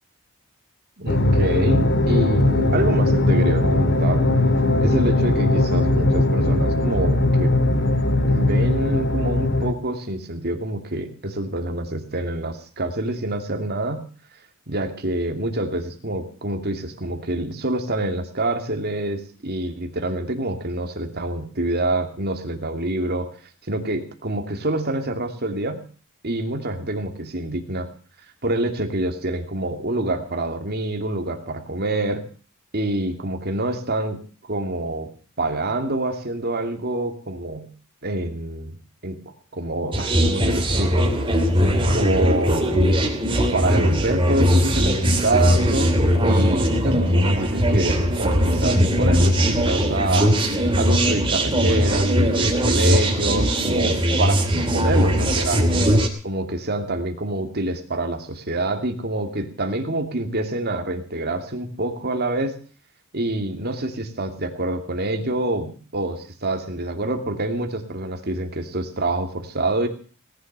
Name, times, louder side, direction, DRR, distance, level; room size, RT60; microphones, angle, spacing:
voice 1, 1.0-4.2 4.8-7.6 8.2-14.0 14.7-23.3 23.7-25.8 26.2-27.9 28.4-32.2 32.7-35.1 35.4-37.7 38.0-38.8 39.0-39.2 39.5-41.4 41.9-42.9 43.5-46.0 46.2-50.4 50.8-54.4 54.7-55.9 56.2-62.6 63.1-69.9, right 2 dB, 45° right, 5 dB, 2.6 m, -26 dB
sound 1, 1.1-9.7, left 1 dB, 55° left, 1.9 m, -19 dB
sound 2, 39.9-56.1, equal, 25° right, 3.0 m, -20 dB
18.5 x 11.0 x 6.8 m, 0.41 s
head